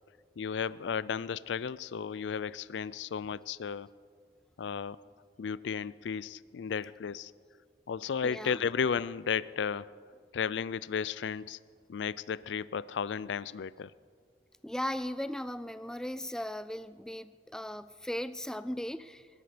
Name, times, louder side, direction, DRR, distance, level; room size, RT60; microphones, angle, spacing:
voice 1, 0.4-3.9 4.6-5.0 5.4-7.3 7.9-9.9 10.3-11.6 11.9-13.9, left 6 dB, 85° left, 20 dB, 0.4 m, -34 dB
voice 2, 8.2-8.7 14.6-19.3, left 1 dB, 5° left, 13 dB, 0.3 m, -37 dB
21.5 x 12.0 x 5.1 m, 2.1 s
head